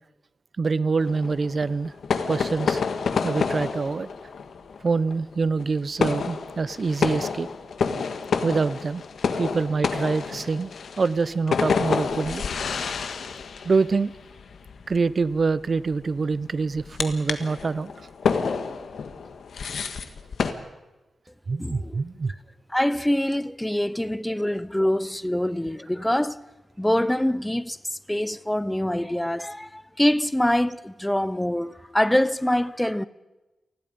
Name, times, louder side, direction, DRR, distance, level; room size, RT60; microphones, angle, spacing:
voice 1, 0.6-1.9 2.2-2.8 3.2-4.1 4.8-7.5 8.4-9.0 9.4-10.7 11.0-12.4 13.6-14.1 14.9-17.9 21.5-22.3, right 4 dB, 40° right, 0.6 m, -25 dB
sound 1, 1.0-20.5, left 5 dB, 65° left, 1.6 m, -29 dB
voice 2, 21.6-22.0 22.7-26.4 26.8-33.1, left 1 dB, 5° left, 0.6 m, -24 dB
28.5 x 20.0 x 5.2 m
wide cardioid pair, 140°, 0 cm